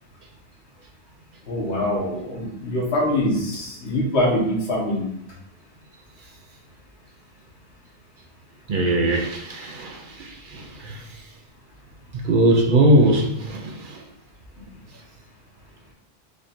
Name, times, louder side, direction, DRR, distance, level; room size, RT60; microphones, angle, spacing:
voice 1, 1.5-5.1, left 1 dB, 80° left, -3 dB, 1.6 m, -24 dB
voice 2, 8.7-11.0 12.1-14.0, right 1 dB, 55° right, 2 dB, 0.8 m, -20 dB
4.9 x 2.6 x 4.2 m, 0.74 s
omnidirectional pair, 1.1 m